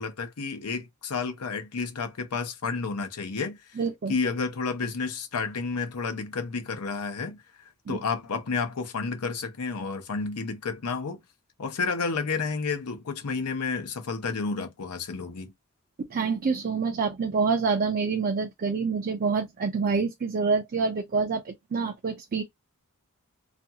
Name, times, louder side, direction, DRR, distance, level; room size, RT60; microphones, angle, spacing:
voice 1, 0.0-3.8 4.1-7.4 7.9-11.2 11.6-15.5, left 4 dB, 90° left, 0.7 m, -31 dB
voice 2, 3.8-4.1 7.9-8.0 16.0-22.4, right 5 dB, 40° right, 0.4 m, -27 dB
2.5 x 2.3 x 2.7 m
head